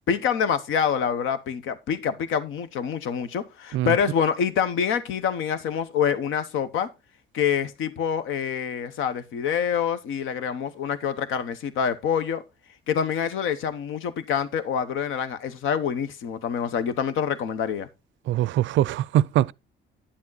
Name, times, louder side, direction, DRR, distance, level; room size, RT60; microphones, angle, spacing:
voice 1, 0.1-6.9 7.3-12.4 12.9-17.9, left 7 dB, 80° left, 1.0 m, -26 dB
voice 2, 18.3-19.5, right 12 dB, 70° right, 0.4 m, -22 dB
10.0 x 7.5 x 4.0 m
cardioid pair, 90°, 20 cm